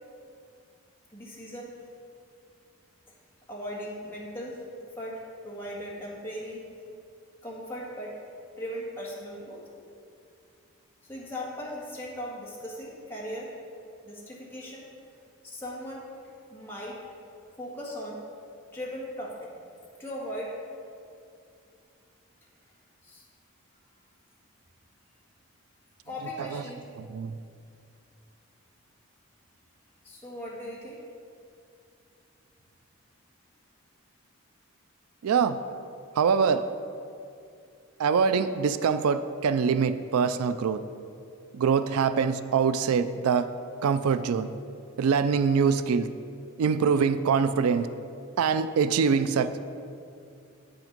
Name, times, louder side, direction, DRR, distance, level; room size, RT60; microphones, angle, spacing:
voice 1, 1.1-1.7 3.5-6.6 7.4-8.2 8.6-9.6 11.0-13.5 14.0-14.8 15.4-16.1 16.5-17.0 17.6-18.2 18.7-19.5 20.0-20.6 23.0-23.3 26.0-26.8 30.0-31.0, equal, 10° left, -6 dB, 1.6 m, -38 dB
voice 2, 27.0-27.4 35.2-35.6 36.2-36.6 38.0-40.8 41.5-43.5 43.8-44.5 45.0-46.1 46.6-47.9 48.4-49.6, right 6 dB, 90° right, 12 dB, 0.4 m, -24 dB
8.6 x 6.0 x 5.2 m, 2.5 s
head